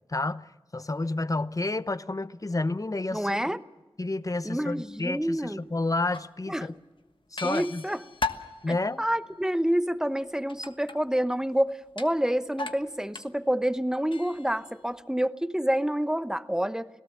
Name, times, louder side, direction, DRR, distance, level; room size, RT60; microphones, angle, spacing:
voice 1, 0.1-3.4 4.0-6.7 7.3-7.8 8.6-9.0, left 2 dB, 40° left, 0.8 m, -30 dB
voice 2, 3.1-3.6 4.4-5.6 6.5-6.7 7.4-8.0 8.7-16.9, equal, 5° right, 0.9 m, -28 dB
sound 1, 4.4-4.5 5.3-5.4 6.0-6.3 6.7-6.8 7.4-9.0 10.5-11.3 11.9-12.2 12.6-13.4 13.7-14.8, left 3 dB, 60° left, 1.3 m, -36 dB
26.5 x 17.5 x 7.4 m
wide cardioid pair, 50°, 9 cm